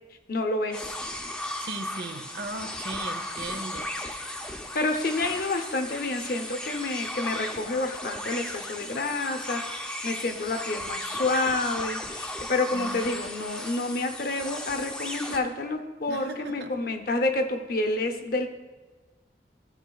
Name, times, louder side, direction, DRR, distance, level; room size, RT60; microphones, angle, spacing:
voice 1, 0.3-1.0 4.7-18.5, left 2 dB, 55° left, 6 dB, 0.7 m, -29 dB
sound 1, 0.7-15.4, left 1 dB, 5° left, 0.5 m, -36 dB
voice 2, 1.6-3.9 12.7-13.1 16.1-16.7, right 2 dB, 70° right, 8 dB, 0.7 m, -37 dB
14.5 x 6.7 x 2.3 m, 1.3 s
head